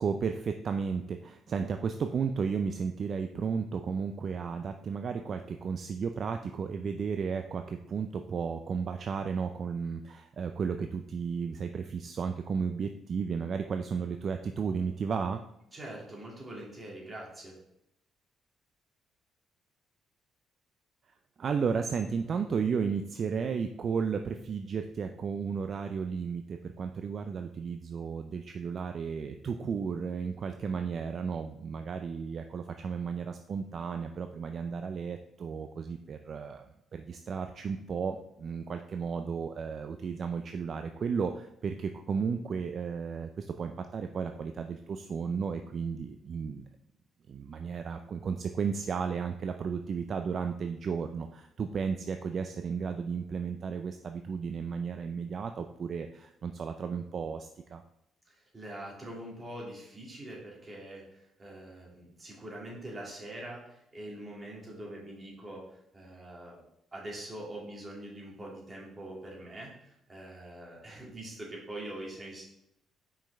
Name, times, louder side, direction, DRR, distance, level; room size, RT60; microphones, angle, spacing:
voice 1, 0.0-15.4 21.4-36.6 36.9-46.7 47.3-57.8, right 6 dB, 50° right, 7 dB, 0.4 m, -33 dB
voice 2, 15.7-17.6 58.2-66.6 66.9-72.4, right 1 dB, 25° right, -4 dB, 2.4 m, -44 dB
5.5 x 5.2 x 3.4 m, 0.80 s
cardioid pair, 90°, 0 cm